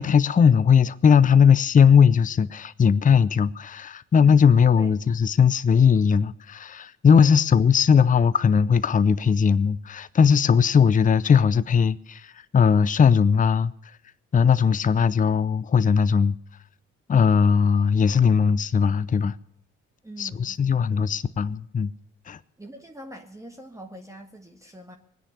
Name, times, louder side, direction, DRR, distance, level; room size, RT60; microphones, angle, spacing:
voice 1, 0.0-13.7 14.3-16.3 17.1-19.4 20.2-21.9 22.3-22.4, left 6 dB, 25° left, 0.6 m, -19 dB
voice 2, 20.0-21.0 22.6-24.9, right 1 dB, 10° right, 1.8 m, -43 dB
21.0 x 10.0 x 6.9 m
figure-of-eight pair, 45°, 35 cm